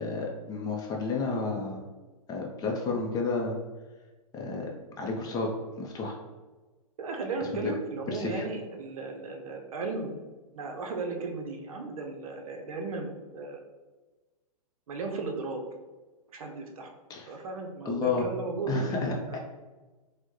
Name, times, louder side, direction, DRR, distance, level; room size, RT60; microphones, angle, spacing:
voice 1, 0.0-1.8 2.3-3.6 4.3-4.7 5.0-5.5 5.8-6.1 7.6-7.7 8.1-8.4 17.1-17.3 17.8-18.2 18.7-19.4, left 3 dB, 20° left, 0 dB, 0.5 m, -31 dB
voice 2, 7.0-10.1 10.5-13.6 14.9-15.7 16.3-16.9 17.3-19.0 19.3-19.4, right 3 dB, 65° right, 3 dB, 0.6 m, -35 dB
4.3 x 2.1 x 3.0 m, 1.2 s
hypercardioid pair, 120°, 19 cm